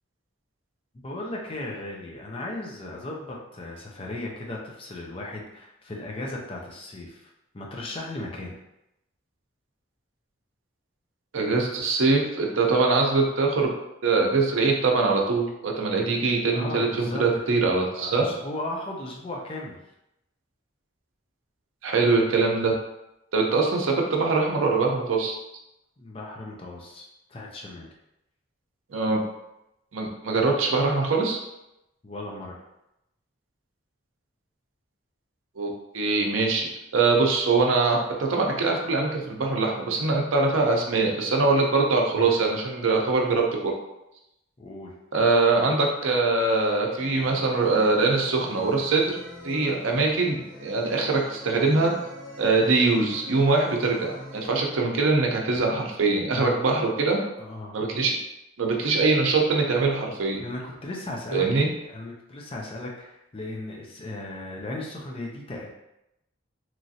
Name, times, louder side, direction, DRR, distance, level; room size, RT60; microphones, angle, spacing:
voice 1, 1.0-7.3 7.5-8.5 16.5-17.4 18.0-19.8 26.0-27.9 32.0-32.6 42.1-42.4 44.6-44.9 56.3-56.6 57.4-57.8 60.4-61.5 61.9-65.7, left 2 dB, 30° left, -1 dB, 0.5 m, -36 dB
voice 2, 11.3-13.7 14.0-18.3 21.8-22.7 23.3-25.4 28.9-29.2 29.9-31.4 35.6-36.7 36.9-43.4 45.1-49.2 49.4-51.9 52.4-57.2 57.7-58.1 58.6-60.4 61.3-61.7, right 3 dB, 80° right, 1 dB, 0.5 m, -23 dB
sound 1, 47.0-54.5, left 1 dB, 10° left, 1.2 m, -44 dB
3.0 x 2.5 x 2.7 m, 0.88 s
head